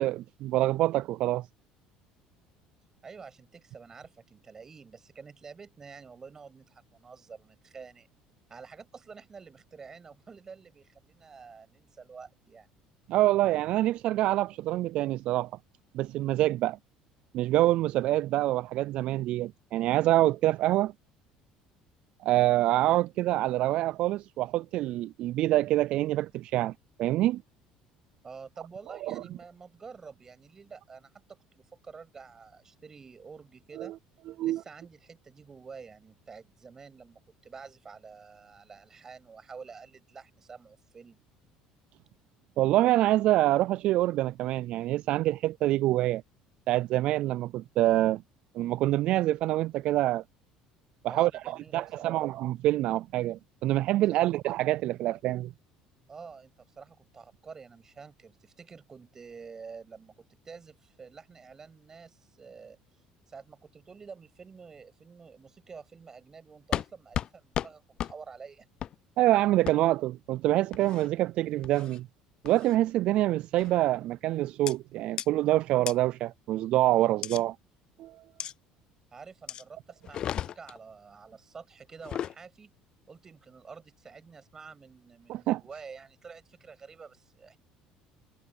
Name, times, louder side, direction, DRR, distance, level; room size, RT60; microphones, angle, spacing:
voice 1, 0.0-1.5 13.1-15.5 15.9-16.8 17.3-20.9 22.2-26.7 27.0-27.4 29.0-29.2 33.8-33.9 34.4-34.6 42.6-46.2 46.7-48.2 48.5-50.2 51.0-55.5 69.2-72.1 72.4-77.6 78.0-78.2 85.3-85.6, right 15 dB, 60° right, 0.3 m, -26 dB
voice 2, 3.0-8.1 8.5-12.7 28.2-33.9 34.4-41.2 51.1-52.2 54.1-54.3 56.1-62.8 63.3-68.7 79.1-82.7 83.1-87.6, right 5 dB, 25° right, 6.8 m, -48 dB
sound 1, 66.7-66.9 67.1-67.3 67.5-67.7 68.0-68.1 68.8-68.9 69.7-69.8 70.7-71.1 71.6-72.0 72.5-72.8 73.6-73.8 74.7-74.8 75.2-75.3 75.9-76.0 77.2-77.4 78.4-78.5 79.5-79.6 80.0-80.8 81.9-82.4, left 10 dB, 40° left, 0.3 m, -34 dB
cardioid pair, 130°, 2 cm